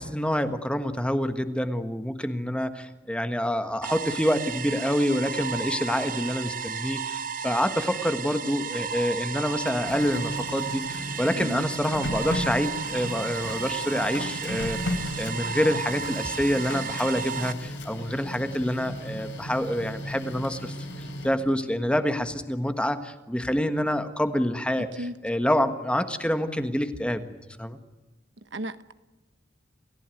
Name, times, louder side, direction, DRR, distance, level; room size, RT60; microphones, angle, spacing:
voice 1, 0.0-14.8 15.2-27.8, equal, 5° left, 9 dB, 1.5 m, -27 dB
sound 1, 3.8-17.5, right 6 dB, 50° right, 1.1 m, -34 dB
Printer, 9.5-21.6, left 1 dB, 80° left, 3.4 m, -36 dB
voice 2, 28.5-28.9, right 1 dB, 75° right, 11 dB, 1.3 m, -33 dB
28.5 x 15.0 x 9.3 m, 1.1 s
head